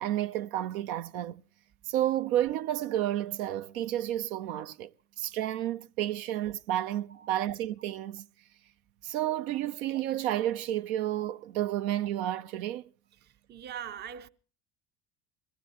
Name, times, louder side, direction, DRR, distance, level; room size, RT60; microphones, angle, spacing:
voice 1, 0.0-1.4 1.9-4.9 5.2-8.3 9.0-12.8, right 12 dB, 65° right, 0.7 m, -31 dB
voice 2, 13.2-14.3, right 9 dB, 25° right, 0.6 m, -42 dB
22.0 x 15.0 x 2.9 m
hypercardioid pair, 70°, 46 cm